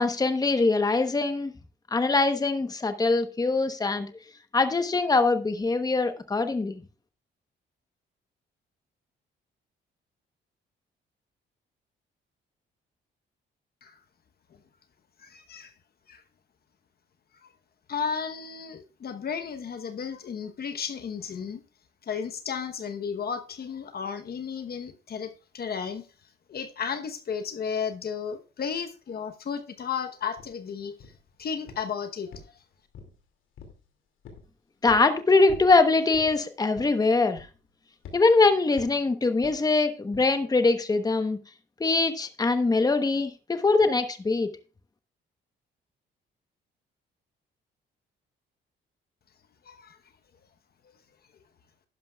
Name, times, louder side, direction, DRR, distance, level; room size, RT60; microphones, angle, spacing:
voice 1, 0.0-1.5 1.9-4.1 4.5-6.8 34.8-37.5 38.1-41.4 41.8-44.5, left 3 dB, 20° left, 1.0 m, -23 dB
voice 2, 15.2-15.7 16.1-16.2 17.4-17.5 17.9-21.6 22.0-26.1 26.5-31.1 31.4-32.6 49.6-50.0, left 6 dB, 50° left, 1.1 m, -34 dB
sound 1, 30.4-30.5 31.0-31.3 31.7-31.9 32.3-33.2 33.6-33.8 34.2-34.5 34.9-35.1 35.5-35.7 36.1-36.4 36.7-37.0 37.4-37.7 38.0-38.2 38.8-39.0 39.4-39.6 40.1-40.3, left 6 dB, 80° left, 2.5 m, -45 dB
11.5 x 10.5 x 2.4 m
cardioid pair, 90°, 20 cm